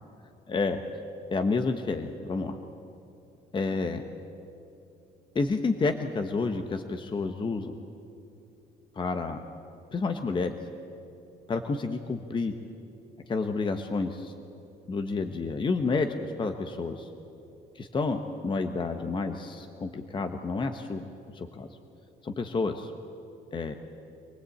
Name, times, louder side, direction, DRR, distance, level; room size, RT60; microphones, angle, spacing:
voice 1, 0.5-0.8 1.3-2.6 3.5-4.0 5.3-7.7 8.9-9.5 9.9-10.6 11.5-12.5 13.3-14.3 14.9-17.1 17.7-21.1 21.3-21.7 22.2-22.9 23.5-23.7, left 3 dB, 30° left, 6 dB, 1.2 m, -30 dB
26.5 x 18.5 x 8.6 m, 2.8 s
cardioid pair, 110°, 17 cm